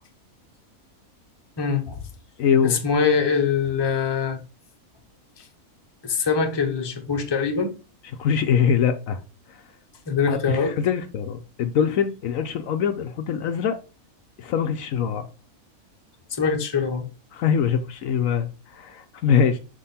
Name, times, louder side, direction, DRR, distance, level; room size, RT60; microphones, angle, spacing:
voice 1, 1.6-2.0 2.6-4.4 5.4-5.5 6.0-7.7 10.1-10.7 16.3-17.1, left 5 dB, 20° left, 0.8 m, -23 dB
voice 2, 2.4-2.8 8.2-9.2 9.5-9.6 10.3-13.8 14.4-15.3 17.3-19.6, left 7 dB, 70° left, 1.0 m, -23 dB
6.3 x 3.7 x 4.1 m
omnidirectional pair, 1.6 m